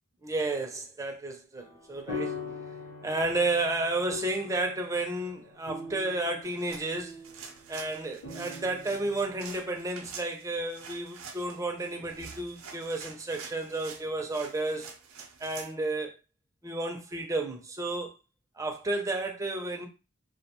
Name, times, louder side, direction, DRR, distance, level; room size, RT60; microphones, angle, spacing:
voice 1, 0.2-2.3 3.0-7.2 7.7-14.9 15.4-16.1 16.6-18.1 18.6-19.9, right 2 dB, 15° right, 0.4 m, -32 dB
sound 1, 1.6-7.6 8.2-9.4, left 4 dB, 60° left, 0.7 m, -41 dB
sound 2, 6.4-15.7, right 5 dB, 65° right, 0.5 m, -47 dB
2.3 x 2.2 x 2.9 m
head